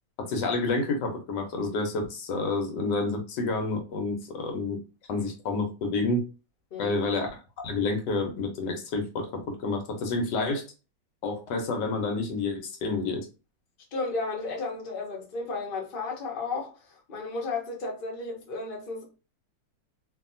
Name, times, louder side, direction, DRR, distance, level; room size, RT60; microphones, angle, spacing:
voice 1, 0.2-4.8 5.1-6.2 6.8-7.3 7.6-10.6 11.2-13.3, left 3 dB, 75° left, 1.3 m, -29 dB
voice 2, 6.7-7.2 13.9-19.0, left 3 dB, 40° left, 0.8 m, -33 dB
2.7 x 2.7 x 2.5 m
omnidirectional pair, 1.9 m